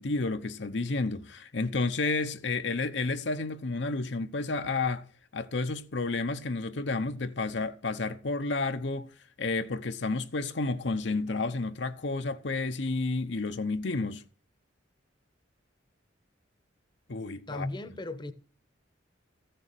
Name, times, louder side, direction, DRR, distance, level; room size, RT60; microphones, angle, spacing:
voice 1, 0.0-5.0 5.3-14.2 17.1-17.7, left 3 dB, 65° left, 0.8 m, -31 dB
voice 2, 17.5-18.3, left 2 dB, 25° left, 0.9 m, -36 dB
14.5 x 6.9 x 9.1 m
head